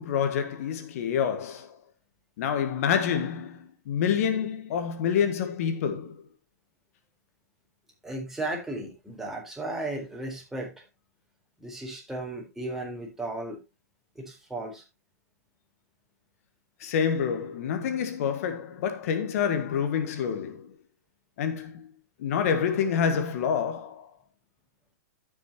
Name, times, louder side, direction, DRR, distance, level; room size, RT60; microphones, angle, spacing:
voice 1, 0.0-1.8 2.4-6.1 16.8-20.7 21.4-21.9 22.2-24.1, left 7 dB, 60° left, 1.6 m, -27 dB
voice 2, 8.0-10.7 11.6-13.6 14.2-14.8, right 2 dB, 5° right, 3.9 m, -35 dB
14.5 x 6.5 x 2.9 m
hypercardioid pair, 120°, 9 cm